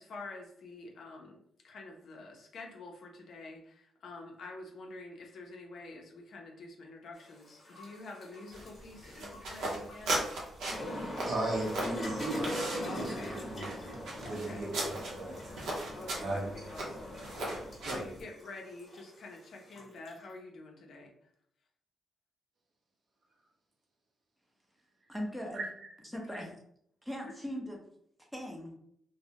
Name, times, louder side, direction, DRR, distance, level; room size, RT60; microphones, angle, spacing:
voice 1, 0.0-1.4 1.6-10.2 11.3-11.6 12.8-13.4 14.3-14.7 15.9-17.2 17.8-21.1 26.1-26.5 27.3-27.4, left 2 dB, 65° left, 1 dB, 0.5 m, -47 dB
sound 1, 7.2-20.2, equal, 25° left, 0.8 m, -42 dB
sound 2, 8.5-18.2, right 1 dB, 90° right, 0.6 m, -38 dB
voice 2, 11.0-15.6 16.2-16.5 17.8-18.0 25.5-25.7, right 2 dB, 45° right, -1 dB, 0.6 m, -37 dB
voice 3, 25.1-25.7 26.1-26.5 27.0-27.8 28.3-28.7, equal, ahead, 0 dB, 0.5 m, -39 dB
2.3 x 2.0 x 2.7 m, 0.69 s
cardioid pair, 135°, 0 cm